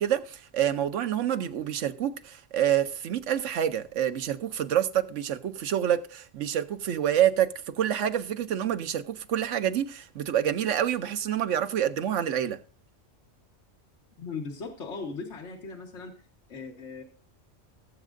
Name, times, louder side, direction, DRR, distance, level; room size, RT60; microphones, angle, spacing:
voice 1, 0.0-12.6, right 10 dB, 85° right, 1.1 m, -27 dB
voice 2, 14.2-16.1 16.5-17.0, left 4 dB, 75° left, 1.7 m, -38 dB
19.5 x 7.3 x 2.6 m
omnidirectional pair, 1.2 m